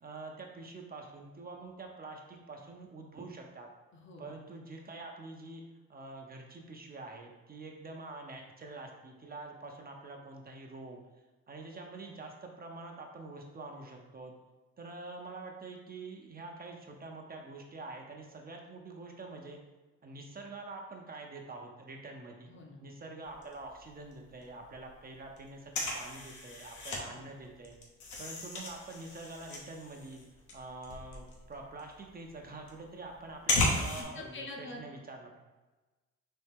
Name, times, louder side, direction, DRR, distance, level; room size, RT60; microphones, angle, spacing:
voice 1, 0.0-3.7 4.2-5.6 5.9-11.0 11.5-14.3 14.8-19.6 20.0-22.5 22.8-27.8 28.2-30.3 30.5-35.4, right 3 dB, 30° right, 1 dB, 0.6 m, -46 dB
voice 2, 3.9-4.3 22.5-22.9 27.1-27.3 33.6-34.9, left 2 dB, 40° left, 1 dB, 0.7 m, -46 dB
sound 1, 23.2-24.1 24.4-24.5 24.7-27.0 27.4-34.0, left 2 dB, 75° left, 1.0 m, -35 dB
4.2 x 2.7 x 3.5 m, 1.2 s
cardioid pair, 90°, 30 cm